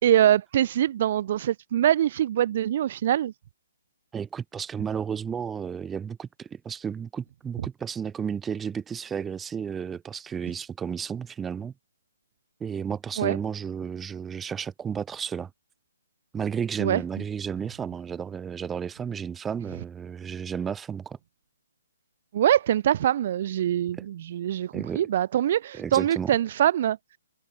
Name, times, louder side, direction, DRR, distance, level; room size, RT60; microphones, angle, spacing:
voice 1, 0.0-3.3 13.2-13.4 16.8-17.0 22.3-27.0, right 11 dB, 45° right, 1.3 m, -23 dB
voice 2, 4.1-11.7 12.6-15.5 16.3-21.2 24.0-24.1 24.7-25.0 25.7-26.3, right 7 dB, 10° right, 2.0 m, -32 dB
figure-of-eight pair, 135°, 0 cm